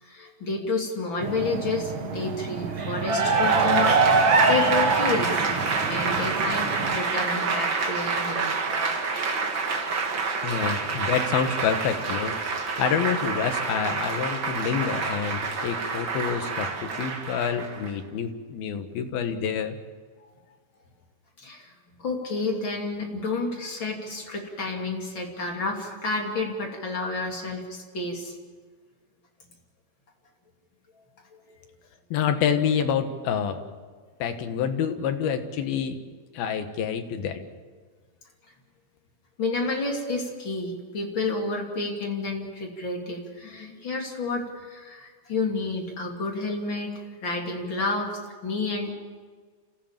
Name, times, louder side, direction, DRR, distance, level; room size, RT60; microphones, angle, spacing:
voice 1, 0.0-8.5 9.4-10.0 21.4-21.7 22.0-28.3 31.3-31.4 39.4-48.1 48.4-48.9, left 3 dB, 35° left, 1 dB, 3.1 m, -30 dB
sound 1, 1.2-7.0, right 6 dB, 70° right, 1.2 m, -33 dB
Cheering / Applause, 2.9-17.9, right 4 dB, 40° right, 1.9 m, -25 dB
voice 2, 10.4-19.8 32.1-33.6 34.2-36.0 36.3-37.4, left 7 dB, 75° left, 7 dB, 3.3 m, -27 dB
28.0 x 15.5 x 7.3 m, 1.5 s
omnidirectional pair, 4.4 m